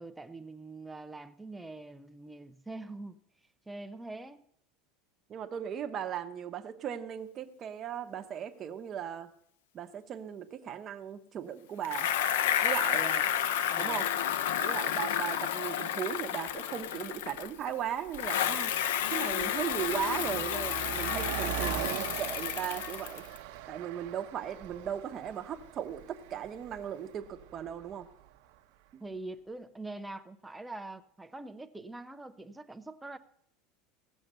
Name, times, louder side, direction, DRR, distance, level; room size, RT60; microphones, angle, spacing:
voice 1, 0.0-3.2 3.7-4.4 12.9-13.0 13.7-14.0 29.0-33.2, right 2 dB, 5° right, 9 dB, 0.5 m, -44 dB
voice 2, 5.3-9.3 9.7-12.1 12.6-13.3 13.8-14.1 14.6-23.2 23.7-28.1 28.9-29.0, right 9 dB, 25° right, 6 dB, 0.8 m, -37 dB
Bicycle, 11.8-17.7 18.1-23.4, left 10 dB, 85° left, 0.6 m, -31 dB
Car passing by, 16.5-16.6 17.4-17.6 17.9-28.3, right 12 dB, 55° right, 0.8 m, -41 dB
17.0 x 7.1 x 6.6 m, 0.70 s
supercardioid pair, 180°, 0 cm